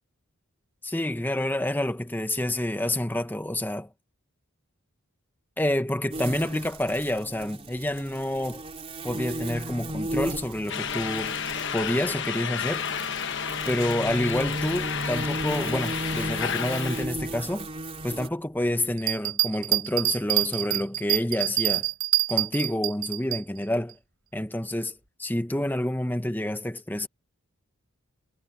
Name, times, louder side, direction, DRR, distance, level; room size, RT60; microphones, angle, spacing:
voice 1, 0.8-3.9 5.6-8.6 9.0-11.3 11.7-12.9 13.6-17.7 18.0-21.9 22.3-24.0 24.3-27.1, left 1 dB, 10° left, 0.9 m, -28 dB
sound 1, 6.1-18.3, right 1 dB, 25° right, 3.7 m, -35 dB
sound 2, 10.7-17.1, left 8 dB, 55° left, 1.1 m, -31 dB
sound 3, 19.0-23.4, right 19 dB, 60° right, 4.5 m, -25 dB
head